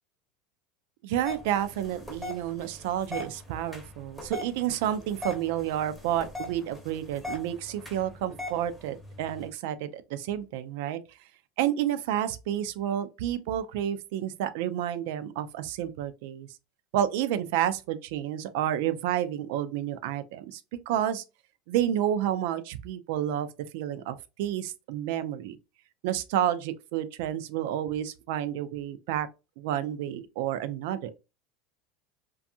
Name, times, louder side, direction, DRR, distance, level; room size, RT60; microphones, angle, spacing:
voice 1, 1.0-11.0 11.6-16.5 16.9-20.6 20.9-21.2 21.7-23.5 23.7-25.6 26.0-29.3 29.6-31.1, right 11 dB, 70° right, 0.3 m, -30 dB
sound 1, 1.2-9.5, left 2 dB, 5° left, 0.7 m, -41 dB
2.6 x 2.3 x 2.6 m
supercardioid pair, 145°, 0 cm